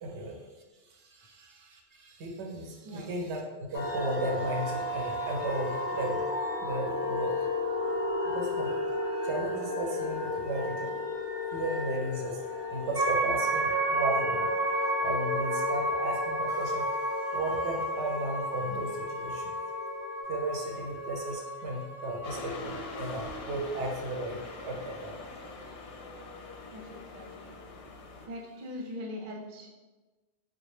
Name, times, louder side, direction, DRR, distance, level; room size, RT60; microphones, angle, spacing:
voice 1, 0.0-0.5 0.7-7.6 8.2-11.2 11.5-19.6 20.3-25.7, right 1 dB, 85° right, 1 dB, 0.9 m, -35 dB
sound 1, 3.7-20.2, left 3 dB, 50° left, 0.4 m, -34 dB
sound 2, 12.9-23.4, right 2 dB, 5° right, 0.6 m, -32 dB
sound 3, 22.2-28.3, left 3 dB, 85° left, 0.9 m, -43 dB
voice 2, 26.7-27.5 28.2-29.7, left 1 dB, 50° right, -1 dB, 0.6 m, -41 dB
3.5 x 2.2 x 3.2 m, 1.2 s
omnidirectional pair, 1.1 m